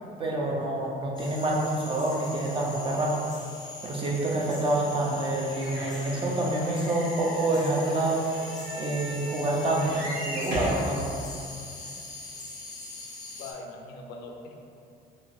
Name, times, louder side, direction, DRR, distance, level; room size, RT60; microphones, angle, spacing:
voice 1, 0.2-3.1 3.8-8.2 8.8-11.1, right 2 dB, 30° right, -3 dB, 0.6 m, -27 dB
sound 1, 1.2-13.5, left 2 dB, 25° left, 0.5 m, -42 dB
sound 2, 5.5-10.9 11.6-11.7 11.9-12.0, equal, 60° right, 1.1 m, -38 dB
voice 2, 13.3-14.6, left 3 dB, 80° left, 2 dB, 0.4 m, -41 dB
3.2 x 2.8 x 2.6 m, 2.5 s
cardioid pair, 110°, 17 cm